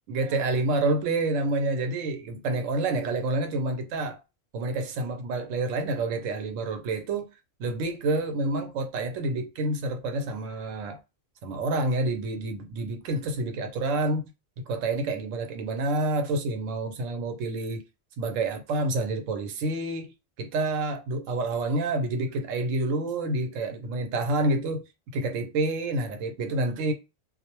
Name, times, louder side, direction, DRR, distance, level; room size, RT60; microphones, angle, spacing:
voice 1, 0.1-4.2 4.5-7.3 7.6-11.0 11.4-14.3 14.7-17.8 18.2-20.1 20.4-24.8 25.1-26.9, right 2 dB, 75° right, 1.0 m, -28 dB
2.4 x 2.0 x 2.9 m
omnidirectional pair, 1.3 m